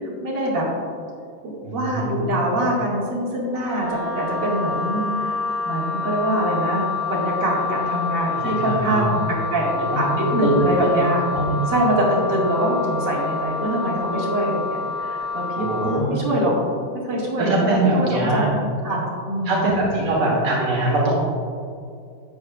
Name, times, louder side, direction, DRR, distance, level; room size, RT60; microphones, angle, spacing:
voice 1, 0.2-0.7 1.7-5.4 5.6-9.2 9.5-11.2 11.7-16.5 16.9-18.5 18.8-19.6, right 1 dB, 55° right, -6 dB, 2.8 m, -24 dB
voice 2, 1.6-2.2 8.3-9.1 9.9-10.7 11.3-11.7 15.6-16.2 17.4-18.5 19.4-21.1, right 2 dB, 80° right, -5 dB, 2.4 m, -22 dB
Wind instrument woodwind instrument, 3.5-16.0, left 4 dB, 60° left, 2.0 m, -28 dB
12.5 x 8.4 x 2.5 m, 2.3 s
omnidirectional pair, 2.4 m